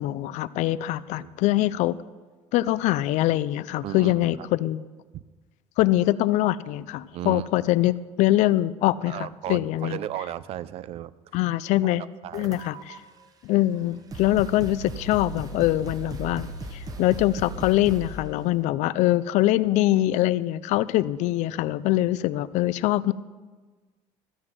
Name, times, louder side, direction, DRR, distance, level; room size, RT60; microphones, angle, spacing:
voice 1, 0.0-2.0 2.5-4.8 5.8-10.0 11.3-12.0 12.3-13.0 13.4-23.1, left 15 dB, 70° left, 18 dB, 0.4 m, -23 dB
voice 2, 3.8-4.2 5.1-5.2 7.1-7.5 9.1-11.1 11.8-12.6, right 12 dB, 50° right, 18 dB, 0.4 m, -35 dB
sound 1, 12.3-13.0 13.7-13.8 14.1-18.3, right 2 dB, 30° right, 1.0 m, -37 dB
14.0 x 7.9 x 6.0 m, 1.4 s
cardioid pair, 145°, 13 cm